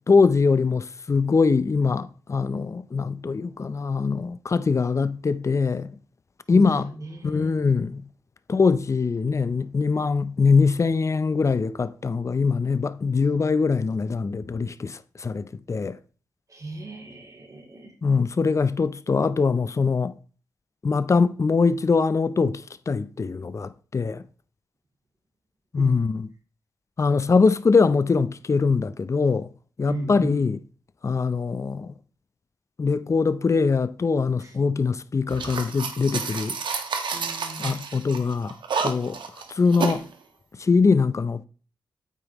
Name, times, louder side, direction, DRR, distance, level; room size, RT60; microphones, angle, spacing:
voice 1, 0.1-5.9 6.5-6.9 7.2-8.0 8.5-16.0 18.0-20.1 20.8-24.2 25.7-26.3 27.0-29.5 29.8-30.6 31.0-31.9 32.8-36.6 37.6-38.6 38.8-39.2 39.5-40.0 40.6-41.4, left 4 dB, 40° left, 0.6 m, -22 dB
voice 2, 6.5-7.6 16.5-17.9 25.8-26.0 29.9-30.4 34.4-34.5 37.1-37.8, right 2 dB, 45° right, 2.9 m, -36 dB
sound 1, 35.3-40.0, right 5 dB, 80° right, 1.3 m, -30 dB
9.0 x 8.3 x 3.1 m
cardioid pair, 70°, 8 cm